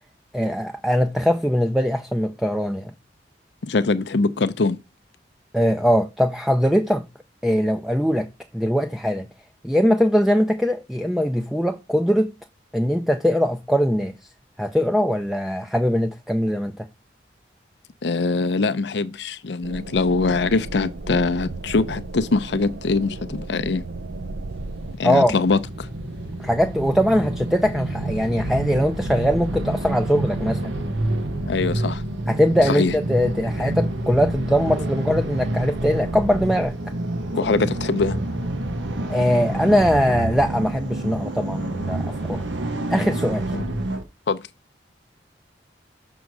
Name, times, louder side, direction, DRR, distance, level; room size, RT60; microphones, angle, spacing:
voice 1, 0.3-2.9 5.5-7.1 7.4-8.3 8.5-9.3 9.6-12.3 12.7-14.2 14.6-16.9 25.0-25.3 26.4-30.8 32.3-36.8 37.4-37.5 39.1-42.4 42.9-43.6, equal, ahead, 0.4 m, -21 dB
voice 2, 3.6-4.8 18.0-23.8 25.0-25.9 31.5-32.0 32.7-32.9 33.6-33.7 37.3-38.2 43.5-43.6 44.3-44.4, left 3 dB, 65° left, 0.6 m, -23 dB
sound 1, 19.6-25.0, right 2 dB, 65° right, 0.6 m, -35 dB
sound 2, 24.6-44.0, right 1 dB, 90° right, 1.3 m, -28 dB
6.2 x 3.7 x 6.1 m
head